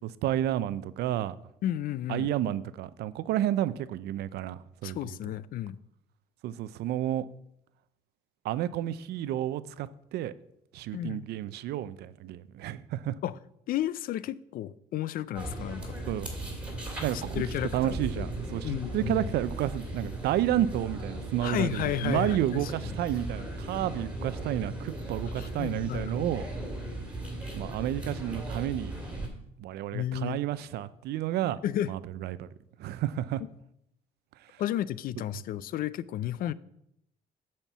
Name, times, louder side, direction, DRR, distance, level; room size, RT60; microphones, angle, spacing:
voice 1, 0.0-1.3 2.1-5.2 6.4-7.3 8.4-10.3 10.7-13.2 16.1-16.3 17.0-17.4 17.7-26.4 27.5-28.9 29.6-31.6 31.9-32.5 32.8-33.4, right 12 dB, 75° right, 0.5 m, -31 dB
voice 2, 1.6-2.3 4.8-5.8 10.9-11.3 13.2-13.4 13.7-16.0 17.1-18.3 18.6-19.3 21.4-22.7 25.4-26.1 29.9-30.4 31.6-31.9 34.6-36.5, left 12 dB, 60° left, 0.4 m, -32 dB
sound 1, 15.3-29.3, right 1 dB, 5° right, 2.3 m, -37 dB
8.8 x 4.4 x 7.2 m
cardioid pair, 110°, 17 cm